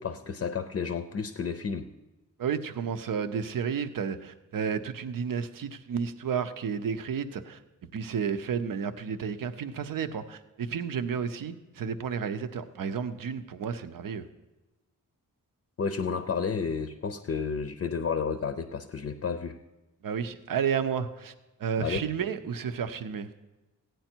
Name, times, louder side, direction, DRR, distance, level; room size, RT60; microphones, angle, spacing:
voice 1, 0.0-1.9 15.8-19.6 21.8-22.0, left 5 dB, 45° left, 9 dB, 0.5 m, -31 dB
voice 2, 2.4-7.6 7.9-14.2 20.0-21.3 21.6-23.3, right 7 dB, 85° right, 10 dB, 0.7 m, -32 dB
15.5 x 9.1 x 4.4 m, 1.1 s
wide cardioid pair, 150°, 33 cm